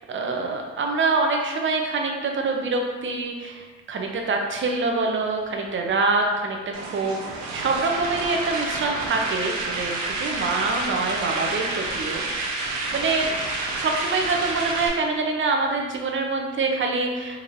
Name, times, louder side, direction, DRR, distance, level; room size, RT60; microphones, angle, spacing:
voice 1, 0.0-6.6 6.9-13.3 13.8-17.4, right 3 dB, 40° right, 2 dB, 0.6 m, -25 dB
sound 1, 6.7-14.9, right 3 dB, 75° right, 0.8 m, -29 dB
4.0 x 2.9 x 2.6 m, 1.3 s
cardioid pair, 90°, 30 cm